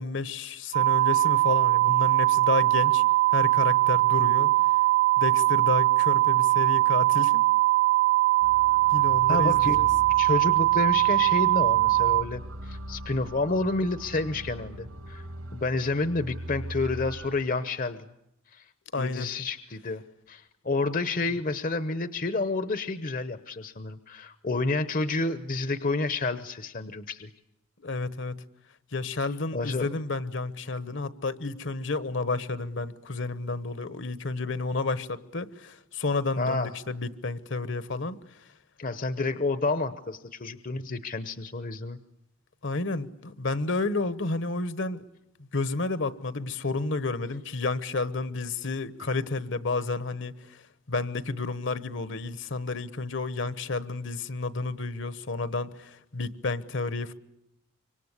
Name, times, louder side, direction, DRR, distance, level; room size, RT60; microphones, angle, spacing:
voice 1, 0.0-3.0 3.3-4.5 5.2-7.4 8.9-9.9 18.9-19.3 27.8-28.4 28.9-38.2 42.6-45.0 45.5-50.3 50.9-57.1, left 3 dB, 60° left, 1.2 m, -31 dB
sound 1, 0.7-12.2, right 19 dB, 35° right, 1.0 m, -21 dB
sound 2, 8.4-17.3, right 1 dB, 80° right, 5.2 m, -41 dB
voice 2, 9.3-9.8 10.2-15.2 15.5-18.0 18.5-18.6 19.0-20.0 20.3-27.3 29.5-29.9 36.4-36.7 38.8-42.0, left 3 dB, 40° left, 0.9 m, -29 dB
26.0 x 24.5 x 8.2 m
head